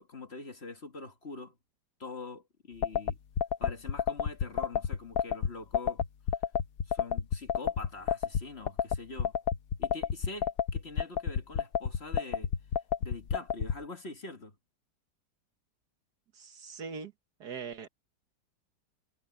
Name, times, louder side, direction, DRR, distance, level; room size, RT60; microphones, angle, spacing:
voice 1, 0.0-1.5 2.0-3.2 3.6-6.0 6.9-9.4 9.8-12.5 13.0-14.5, left 3 dB, 35° left, 1.7 m, -44 dB
sound 1, 2.8-13.8, left 8 dB, 60° left, 1.2 m, -29 dB
voice 2, 16.3-17.1 17.4-17.9, right 5 dB, 65° right, 1.9 m, -41 dB
omnidirectional pair, 1.9 m